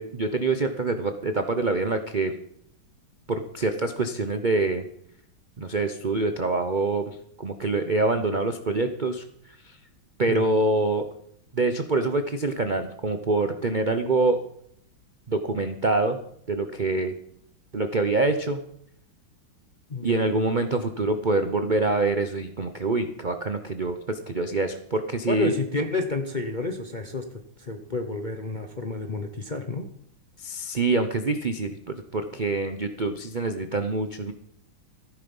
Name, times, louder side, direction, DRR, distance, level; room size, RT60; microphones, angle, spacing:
voice 1, 0.0-2.3 3.3-4.8 5.6-9.2 9.6-9.8 10.2-11.1 11.5-14.4 15.3-16.2 16.5-17.1 17.7-18.6 20.0-25.6 30.4-31.7 32.1-34.3, right 3 dB, 65° right, 7 dB, 0.4 m, -25 dB
voice 2, 25.3-29.9, left 3 dB, 40° left, 5 dB, 0.6 m, -30 dB
14.0 x 12.0 x 5.5 m, 0.71 s
omnidirectional pair, 2.2 m